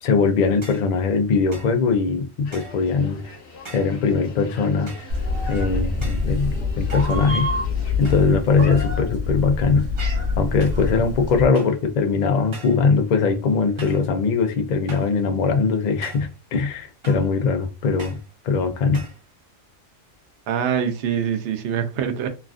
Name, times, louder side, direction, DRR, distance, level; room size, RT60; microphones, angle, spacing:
voice 1, 0.0-3.2 3.7-4.9 5.5-7.5 8.0-9.9 10.4-18.2 18.4-19.0, left 4 dB, 85° left, 0.3 m, -21 dB
sound 1, 0.6-0.9 1.5-1.8 2.5-2.9 3.6-4.0 4.9-5.2 6.0-6.3 6.9-7.5 8.0-8.4 8.7-9.2 10.0-10.3 10.6-10.9 11.5-11.9 12.5-12.9 13.8-14.1 14.9-15.2 16.0-16.4 17.0-17.4 18.0-18.3 18.9-19.2, right 3 dB, 30° right, 0.6 m, -42 dB
sound 2, 2.4-8.2, left 3 dB, 60° left, 1.0 m, -43 dB
Meow, 5.1-11.5, left 3 dB, 50° right, 1.2 m, -25 dB
voice 2, 20.5-22.3, right 8 dB, 65° right, 0.8 m, -24 dB
3.1 x 2.4 x 2.3 m
omnidirectional pair, 1.4 m